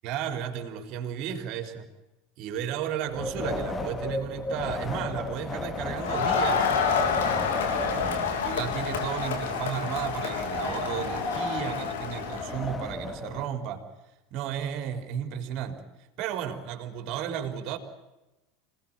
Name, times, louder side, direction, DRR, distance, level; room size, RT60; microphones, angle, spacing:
voice 1, 0.0-1.8 2.4-6.7 7.7-13.8 14.3-15.8 16.2-17.8, right 9 dB, 55° right, 6 dB, 4.0 m, -34 dB
Wind, 3.1-13.5, left 2 dB, 25° left, 2.7 m, -34 dB
Crowd, 6.0-12.6, left 6 dB, 75° left, 3.4 m, -29 dB
26.0 x 18.5 x 9.0 m, 1.0 s
hypercardioid pair, 80°, 0 cm